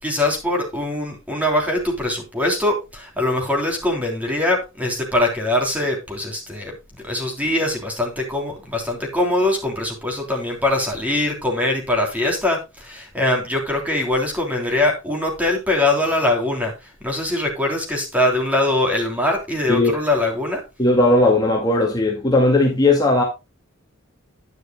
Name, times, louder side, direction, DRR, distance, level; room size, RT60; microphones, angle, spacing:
voice 1, 0.0-6.7 7.0-16.7 17.0-20.6, left 1 dB, 5° right, 3.2 m, -22 dB
voice 2, 20.8-23.2, left 2 dB, 20° left, 2.0 m, -17 dB
11.0 x 10.0 x 2.2 m
head